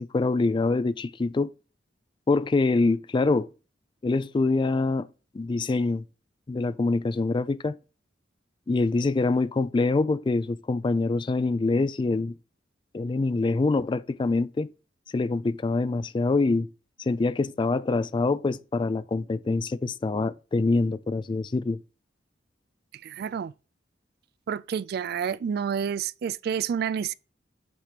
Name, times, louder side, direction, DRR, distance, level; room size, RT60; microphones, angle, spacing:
voice 1, 0.0-1.5 2.3-3.5 4.0-5.1 5.3-6.0 6.5-7.8 8.7-12.3 12.9-14.7 15.1-16.7 17.0-21.8, left 3 dB, 25° left, 0.3 m, -25 dB
voice 2, 22.9-23.5 24.5-27.1, right 7 dB, 55° right, 0.3 m, -29 dB
8.1 x 2.9 x 4.9 m
head